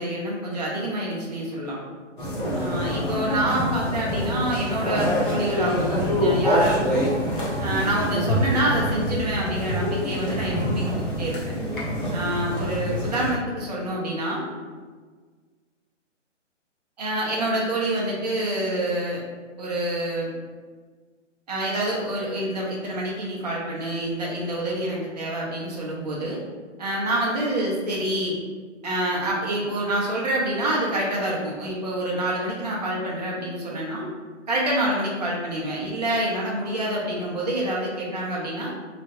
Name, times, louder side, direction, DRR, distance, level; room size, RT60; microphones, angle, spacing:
voice 1, 0.0-1.8 2.6-7.1 7.6-11.5 12.1-14.5 17.0-19.2 19.6-20.3 21.5-26.4 26.8-28.4 28.8-34.1 34.5-38.7, right 1 dB, 35° right, -4 dB, 0.6 m, -27 dB
sound 1, 2.2-13.3, equal, 45° left, 0.8 m, -25 dB
2.8 x 2.2 x 3.0 m, 1.5 s
hypercardioid pair, 165°, 37 cm